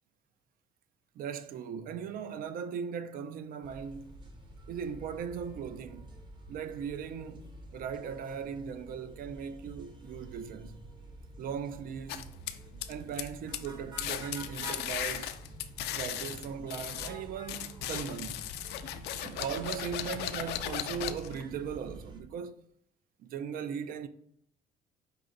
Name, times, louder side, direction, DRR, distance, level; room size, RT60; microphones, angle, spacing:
voice 1, 1.2-4.2 4.7-6.1 6.5-10.8 11.4-12.3 12.9-15.4 15.9-18.5 19.2-22.6 23.2-24.1, right 7 dB, 60° right, 0.4 m, -38 dB
sound 1, 3.6-22.2, right 2 dB, 25° right, 0.8 m, -48 dB
sound 2, 12.1-13.3 13.5-13.7 14.0-17.1 17.5-21.4, left 12 dB, 80° left, 0.4 m, -37 dB
5.4 x 2.6 x 3.8 m
cardioid pair, 110°, 17 cm